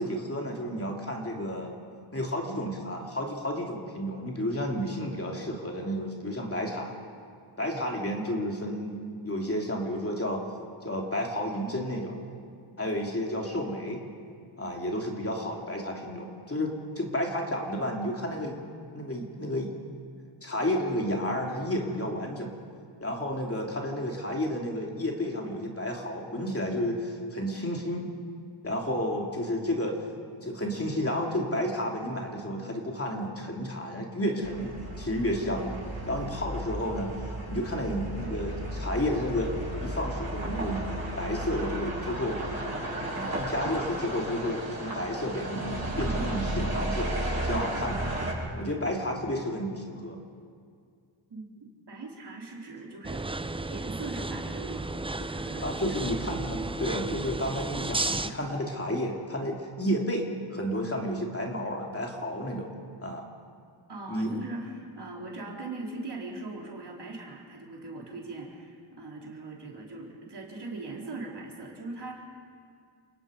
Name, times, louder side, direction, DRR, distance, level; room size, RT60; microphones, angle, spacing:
voice 1, 0.0-1.7 2.1-6.9 7.6-10.4 10.8-12.2 12.8-14.0 14.6-18.6 18.9-19.7 20.4-22.5 23.0-28.1 28.6-30.0 30.4-35.7 36.1-37.1 37.5-39.5 39.8-42.4 43.1-47.1 47.4-48.1 48.5-50.2 55.6-62.7 63.0-63.3 64.1-64.4, equal, 30° left, 0 dB, 3.3 m, -31 dB
sound 1, 34.4-48.3, right 1 dB, 30° right, 7.9 m, -34 dB
voice 2, 51.3-54.9 55.2-56.1 63.9-72.2, right 2 dB, 55° right, -2 dB, 4.1 m, -40 dB
sound 2, 53.0-58.3, right 2 dB, 10° right, 0.6 m, -33 dB
29.5 x 18.5 x 5.3 m, 2.2 s
cardioid pair, 75°, 48 cm